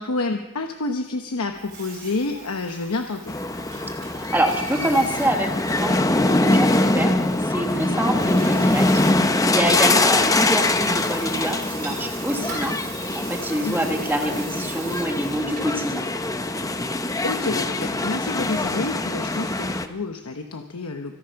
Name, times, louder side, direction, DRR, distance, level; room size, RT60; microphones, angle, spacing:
voice 1, 0.0-3.3 8.5-8.6 9.9-10.0 13.6-13.9 17.2-21.1, left 3 dB, 90° left, 5 dB, 1.0 m, -29 dB
Water tap faucet / Sink (filling or washing), 1.5-15.8, right 5 dB, 45° right, 4.4 m, -41 dB
sound 1, 3.3-19.9, left 2 dB, 15° left, 0.7 m, -23 dB
voice 2, 4.1-7.1 7.4-8.9 9.1-12.8 13.1-16.0, right 1 dB, 10° right, 4 dB, 1.3 m, -26 dB
25.5 x 8.8 x 5.8 m, 1.0 s
head